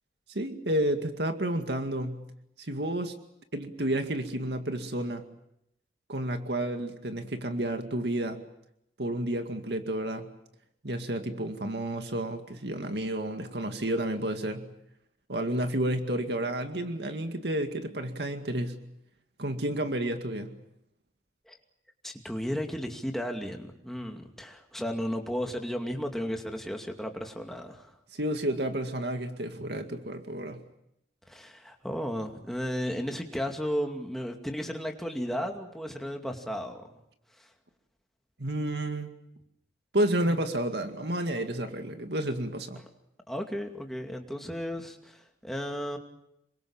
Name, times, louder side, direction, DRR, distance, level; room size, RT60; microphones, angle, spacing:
voice 1, 0.3-2.3 2.6-3.2 3.5-5.3 6.1-8.4 9.0-10.3 10.8-14.7 15.3-18.8 19.4-20.5 28.1-30.6 38.4-39.1 39.9-42.8, right 1 dB, 70° right, 6 dB, 2.1 m, -31 dB
voice 2, 22.0-28.0 31.3-36.9 37.4-37.5 43.3-46.0, equal, ahead, 3 dB, 2.5 m, -34 dB
27.5 x 23.5 x 7.3 m, 0.80 s
head